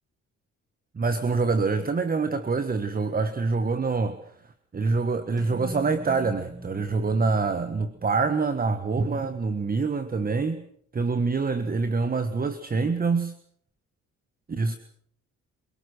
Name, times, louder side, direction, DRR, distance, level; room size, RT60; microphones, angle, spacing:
voice 1, 0.9-4.2 4.7-10.6 10.9-13.3 14.5-14.8, right 4 dB, 30° right, 10 dB, 1.5 m, -25 dB
sound 1, 5.4-9.6, right 1 dB, 10° right, 2.3 m, -43 dB
27.0 x 18.5 x 6.4 m, 0.64 s
cardioid pair, 90°, 30 cm